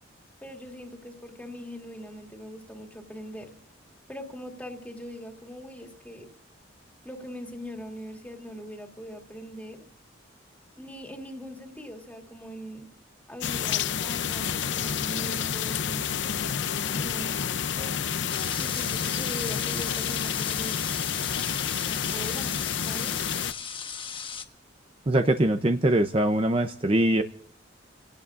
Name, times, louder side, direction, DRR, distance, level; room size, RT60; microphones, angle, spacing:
voice 1, 0.4-3.5 4.1-6.3 7.0-9.9 10.8-12.9 13.3-16.1 16.9-17.4 17.8-18.1 18.5-20.8 21.8-22.6 22.8-23.1, equal, 10° left, 2 dB, 2.6 m, -41 dB
sound 1, 13.4-23.5, left 8 dB, 70° left, 0.6 m, -29 dB
sound 2, 18.3-24.4, left 6 dB, 25° left, 1.2 m, -37 dB
voice 2, 25.1-27.2, right 1 dB, 30° right, 7 dB, 0.6 m, -22 dB
28.5 x 17.5 x 2.5 m, 0.63 s
head